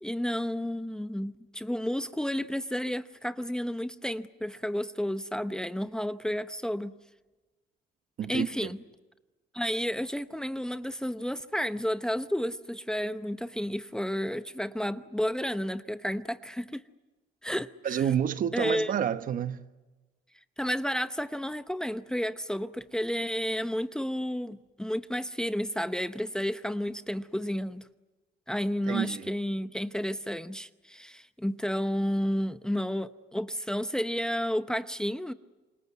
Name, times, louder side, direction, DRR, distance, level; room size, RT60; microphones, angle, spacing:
voice 1, 0.0-7.0 8.3-8.8 9.5-16.8 17.4-18.0 18.5-18.9 20.6-27.9 28.5-35.3, equal, 5° left, 0.8 m, -31 dB
voice 2, 8.2-8.7 17.8-19.6 28.9-29.3, right 9 dB, 55° right, 1.2 m, -29 dB
27.5 x 21.5 x 9.5 m
cardioid pair, 110°, 17 cm